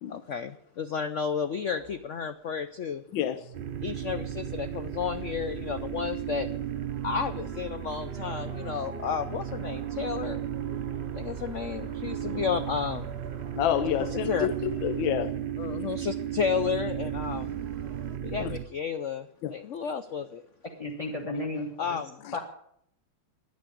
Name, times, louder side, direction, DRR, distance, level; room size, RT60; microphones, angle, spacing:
voice 1, 0.1-3.0 3.8-6.5 7.0-10.4 11.1-13.1 14.0-14.5 15.6-17.6 18.2-20.4 21.8-22.4, left 6 dB, 65° left, 10 dB, 0.7 m, -32 dB
sound 1, 1.7-2.1 3.1-5.6 6.3-15.3 16.7-18.2, right 4 dB, 40° right, 1.2 m, -48 dB
voice 2, 3.1-3.4 13.6-14.5 14.8-15.3 18.4-18.5 19.4-19.5, left 11 dB, 85° left, 12 dB, 1.4 m, -28 dB
sound 2, 3.5-18.6, right 10 dB, 70° right, 0.5 m, -35 dB
voice 3, 20.8-22.0 22.3-22.4, left 2 dB, 20° left, 0 dB, 1.3 m, -33 dB
10.5 x 9.5 x 9.7 m, 0.69 s
omnidirectional pair, 2.0 m